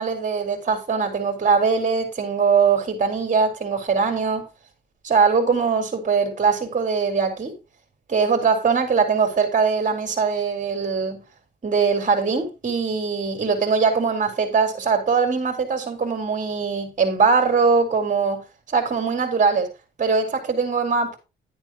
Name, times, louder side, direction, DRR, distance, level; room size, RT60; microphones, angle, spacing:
voice 1, 0.0-4.5 5.0-7.6 8.1-11.2 11.6-18.4 18.7-19.7 20.0-21.2, right 5 dB, 40° right, 4.4 m, -21 dB
12.0 x 8.6 x 3.0 m
cardioid pair, 90°, 20 cm